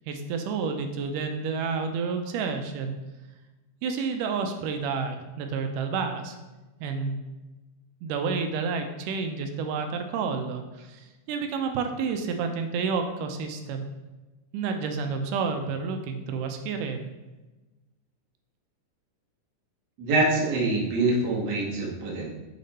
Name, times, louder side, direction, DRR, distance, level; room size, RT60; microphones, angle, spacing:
voice 1, 0.1-3.0 3.8-6.4 6.8-7.2 8.0-13.9 14.5-17.1, right 5 dB, 80° right, 5 dB, 2.1 m, -30 dB
voice 2, 20.0-22.3, right 2 dB, 65° right, -3 dB, 1.0 m, -25 dB
6.7 x 3.7 x 4.1 m, 1.1 s
omnidirectional pair, 3.8 m